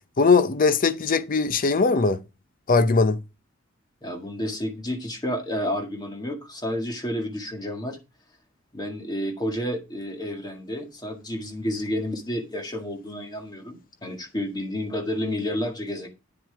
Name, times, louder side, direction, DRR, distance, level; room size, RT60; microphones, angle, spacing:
voice 1, 0.2-2.2 2.7-3.2, left 4 dB, 45° left, 0.6 m, -20 dB
voice 2, 4.0-8.0 8.7-16.1, left 1 dB, 20° left, 1.9 m, -30 dB
9.6 x 7.5 x 3.4 m
head